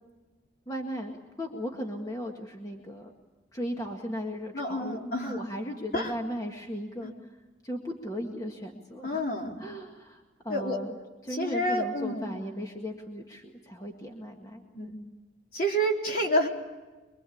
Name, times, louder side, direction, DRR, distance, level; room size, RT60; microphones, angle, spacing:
voice 1, 0.7-3.1 3.5-7.1 7.6-9.3 9.6-11.0 11.2-15.0, equal, 20° left, 1 dB, 1.9 m, -37 dB
voice 2, 4.5-5.4 5.9-6.1 7.0-7.1 9.0-9.6 10.5-10.8 11.3-12.3 14.7-14.9 15.5-16.5, equal, 50° left, 0 dB, 4.1 m, -29 dB
24.5 x 24.0 x 8.6 m, 1.2 s
head